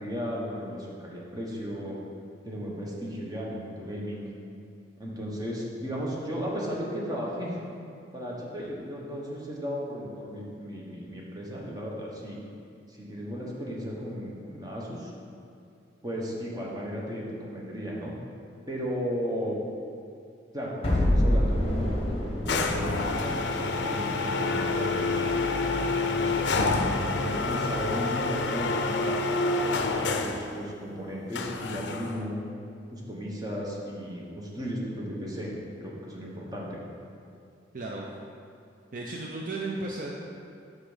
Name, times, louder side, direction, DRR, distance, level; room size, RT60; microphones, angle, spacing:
voice 1, 0.0-1.9 2.4-4.2 5.0-7.7 8.1-12.4 12.9-15.1 16.0-18.1 18.7-19.6 20.5-23.4 23.7-25.3 26.0-29.2 29.6-32.4 32.9-35.5 35.8-36.8, equal, 20° right, -4 dB, 1.1 m, -35 dB
sound 1, 20.8-25.9, left 1 dB, 35° left, 1.0 m, -29 dB
sound 2, 22.5-30.5 31.3-32.3, left 3 dB, 65° left, 0.5 m, -28 dB
voice 2, 37.7-38.1 38.9-40.1, right 2 dB, 45° right, -2 dB, 0.5 m, -34 dB
6.0 x 5.8 x 5.0 m, 2.5 s
head